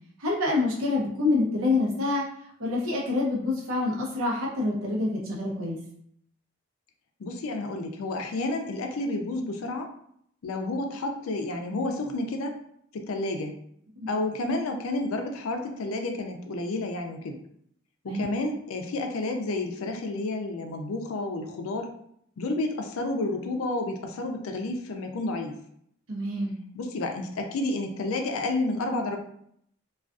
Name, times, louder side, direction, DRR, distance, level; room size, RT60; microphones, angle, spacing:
voice 1, 0.2-2.2 2.6-5.8 14.0-14.1 18.1-18.3 26.1-26.5, left 2 dB, 85° right, -3 dB, 0.8 m, -26 dB
voice 2, 7.2-9.9 10.4-12.5 12.9-13.5 14.1-17.4 18.0-21.9 22.4-25.6 26.7-29.2, left 2 dB, 85° left, 4 dB, 0.4 m, -30 dB
2.3 x 2.3 x 2.4 m, 0.69 s
head